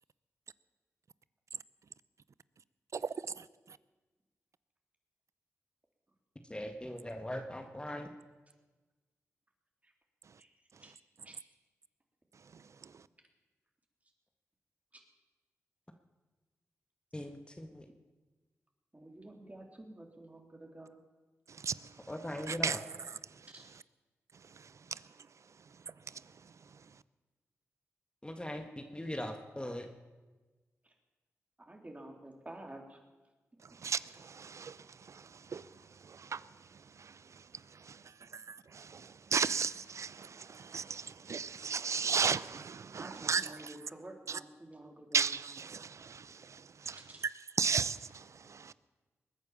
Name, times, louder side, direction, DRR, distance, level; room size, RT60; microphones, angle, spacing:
voice 1, 6.5-8.1 17.1-17.8 22.1-22.8 28.2-29.9, left 1 dB, 15° left, 1.7 m, -40 dB
voice 2, 18.9-20.9 23.5-23.7 30.8-30.9 31.7-33.0 43.0-45.3 47.0-47.3, right 1 dB, 25° right, 3.8 m, -50 dB
voice 3, 22.5-22.8 33.8-34.8 35.1-35.2 35.5-35.6 36.1-36.4 37.0-37.1 37.9-38.0 38.3-38.4 38.7-43.5 44.3-44.4 45.1-47.0 47.6-48.7, right 6 dB, 65° right, 0.6 m, -34 dB
21.0 x 9.4 x 7.3 m
supercardioid pair, 40°, 6 cm